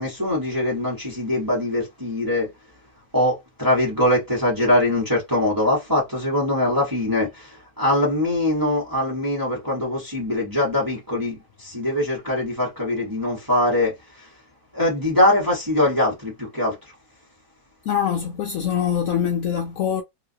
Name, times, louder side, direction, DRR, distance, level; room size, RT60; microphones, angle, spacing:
voice 1, 0.0-2.5 3.1-14.3 14.7-16.8, left 1 dB, 15° right, 1.1 m, -22 dB
voice 2, 17.9-20.0, left 8 dB, 85° left, 0.7 m, -23 dB
3.0 x 2.7 x 2.7 m
omnidirectional pair, 2.0 m